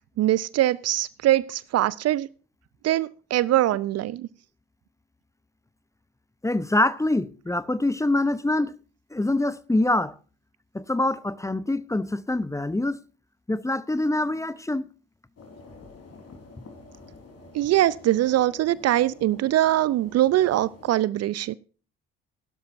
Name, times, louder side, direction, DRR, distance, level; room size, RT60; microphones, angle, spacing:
voice 1, 0.2-2.3 2.8-4.3 17.5-21.5, right 14 dB, 45° right, 0.5 m, -22 dB
voice 2, 6.4-8.8 9.1-10.1 10.7-13.0 13.5-14.8, left 2 dB, 10° left, 0.7 m, -25 dB
sound 1, 15.4-20.9, left 3 dB, 40° left, 4.0 m, -48 dB
16.0 x 12.0 x 2.7 m
figure-of-eight pair, 50°, 36 cm